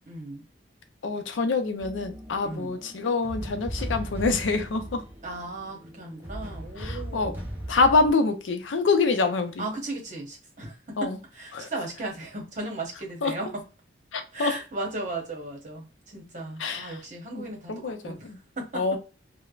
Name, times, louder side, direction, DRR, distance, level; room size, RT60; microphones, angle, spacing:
voice 1, 0.1-0.4 2.4-2.8 5.2-7.4 9.6-13.6 14.3-18.8, right 2 dB, 40° right, 0.9 m, -36 dB
voice 2, 1.0-5.0 6.8-7.3 7.7-9.6 11.0-11.2 11.5-11.7 13.2-13.3 14.1-14.5 16.6-17.0 17.4-17.5 17.7-18.4 18.7-19.0, left 4 dB, 85° left, 0.5 m, -25 dB
sound 1, 1.8-8.1, right 1 dB, 10° right, 0.5 m, -38 dB
3.1 x 2.0 x 2.3 m
head